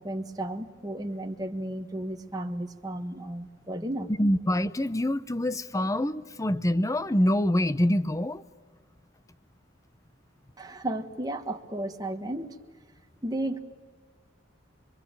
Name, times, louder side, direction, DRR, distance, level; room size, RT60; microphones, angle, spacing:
voice 1, 0.0-4.1 10.6-12.6 13.2-13.6, right 1 dB, 20° right, 4 dB, 1.5 m, -33 dB
voice 2, 4.1-8.4, left 1 dB, 15° left, 14 dB, 0.7 m, -25 dB
27.0 x 23.0 x 9.0 m, 1.5 s
head